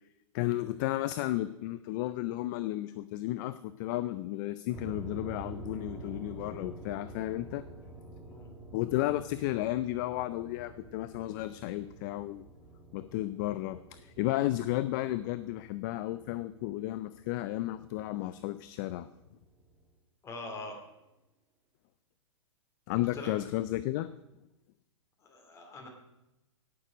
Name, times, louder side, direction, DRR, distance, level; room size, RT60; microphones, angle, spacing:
voice 1, 0.3-7.6 8.7-12.4 12.9-19.1 22.9-24.1, left 16 dB, 40° left, 14 dB, 0.4 m, -33 dB
sound 1, 4.7-19.9, right 2 dB, 10° right, 1.7 m, -48 dB
voice 2, 20.2-20.8 23.1-23.4 25.2-25.9, left 2 dB, 20° left, 2 dB, 2.7 m, -43 dB
17.0 x 6.7 x 5.0 m, 0.94 s
hypercardioid pair, 130°, 16 cm